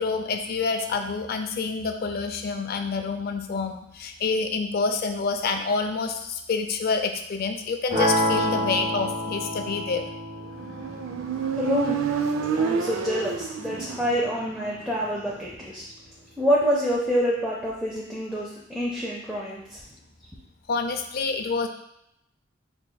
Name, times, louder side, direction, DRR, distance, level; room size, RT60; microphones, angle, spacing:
voice 1, 0.0-10.0 20.7-21.7, left 4 dB, 50° left, 7 dB, 0.4 m, -27 dB
sound 1, 7.9-13.9, equal, 25° right, 1.2 m, -29 dB
sound 2, 9.0-9.3 9.7-9.8 10.2-10.3 10.5-12.4 12.8-13.1 13.6-15.6, right 1 dB, 60° right, 1.4 m, -46 dB
Motorcycle, 10.6-14.2, right 6 dB, 85° right, 0.4 m, -28 dB
voice 2, 11.5-12.0 12.6-15.8 16.4-19.8, equal, 5° right, -6 dB, 0.5 m, -27 dB
4.6 x 2.9 x 2.2 m, 0.80 s
head